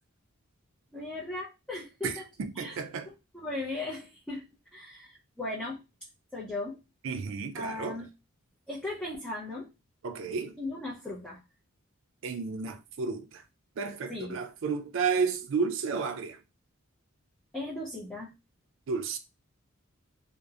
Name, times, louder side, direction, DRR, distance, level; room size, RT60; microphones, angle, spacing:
voice 1, 0.9-2.2 2.6-2.8 3.1-4.5 4.7-5.8 6.3-6.8 7.5-8.1 8.7-9.7 10.6-11.4 14.1-14.4 17.5-18.3, left 2 dB, 5° left, 0.5 m, -37 dB
voice 2, 2.0-3.1 7.0-8.0 10.0-10.5 12.2-13.4 13.8-16.4 18.9-19.2, right 5 dB, 60° right, 0.4 m, -32 dB
2.8 x 2.0 x 2.3 m
head